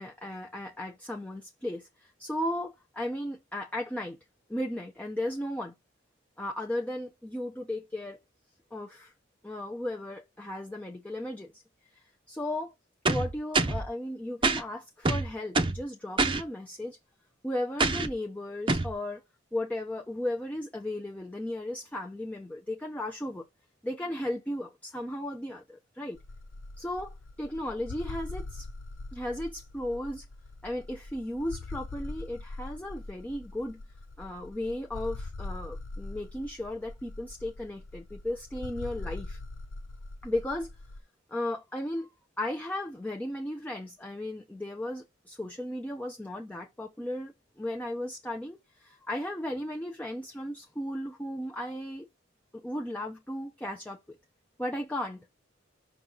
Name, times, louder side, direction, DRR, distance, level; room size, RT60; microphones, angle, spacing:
voice 1, 0.0-4.2 4.5-5.7 6.4-8.2 8.7-9.1 9.4-11.6 12.3-12.7 13.1-17.0 17.4-19.2 19.5-23.5 23.8-26.2 26.8-28.7 29.1-30.2 30.6-33.8 34.2-39.4 40.2-40.8 41.3-42.1 42.4-52.1 52.5-54.2 54.6-55.2, left 1 dB, 10° left, 0.6 m, -35 dB
sound 1, 13.1-13.9 14.4-14.6 15.1-15.8 16.2-16.4 17.8-18.1 18.7-18.9, right 3 dB, 25° right, 0.8 m, -26 dB
sound 2, 26.1-41.0, left 2 dB, 70° left, 0.6 m, -42 dB
5.8 x 3.9 x 5.9 m
head